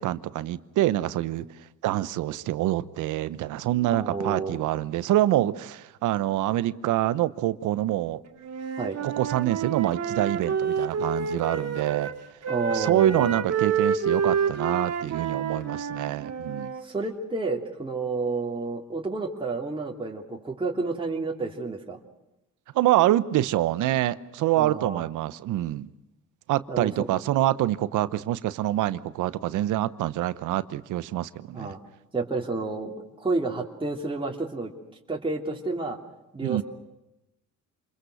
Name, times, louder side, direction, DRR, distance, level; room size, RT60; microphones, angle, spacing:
voice 1, 0.0-1.5 1.8-8.2 9.0-12.1 12.7-16.7 22.7-25.9 26.5-31.7 36.4-36.6, right 14 dB, 90° right, 15 dB, 0.9 m, -26 dB
voice 2, 3.9-4.6 8.8-9.0 12.5-13.3 16.8-22.0 24.6-25.0 26.7-26.9 31.5-31.8 32.1-34.7 35.1-36.0 36.3-36.6, right 3 dB, 15° right, -1 dB, 3.0 m, -30 dB
Wind instrument woodwind instrument, 8.4-12.2 12.4-16.8, right 7 dB, 55° right, 2.0 m, -28 dB
28.5 x 22.0 x 6.5 m, 0.92 s
cardioid pair, 90°, 30 cm